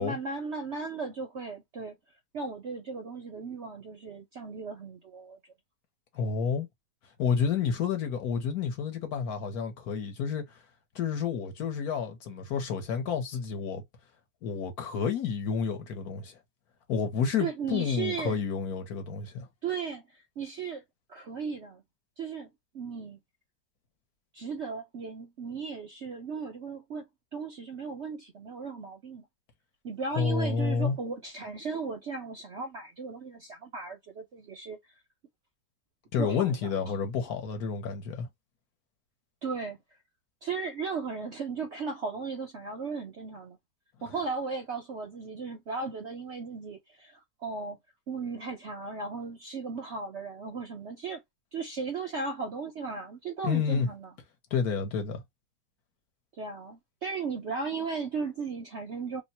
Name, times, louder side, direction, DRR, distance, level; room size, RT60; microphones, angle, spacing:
voice 1, 0.0-2.0 2.3-5.4 17.4-18.4 19.6-20.8 21.1-21.8 22.2-23.2 24.3-27.0 27.3-29.2 29.8-34.8 36.2-36.5 39.4-39.8 40.4-43.6 44.0-47.8 48.1-51.2 51.5-54.1 56.3-59.2, right 4 dB, 65° right, 0.7 m, -36 dB
voice 2, 6.1-6.7 7.2-10.6 10.9-13.8 14.4-16.4 16.9-19.5 30.1-31.0 36.1-38.3 53.4-53.9 54.5-55.2, left 6 dB, 65° left, 1.2 m, -30 dB
3.0 x 2.2 x 4.1 m
omnidirectional pair, 1.9 m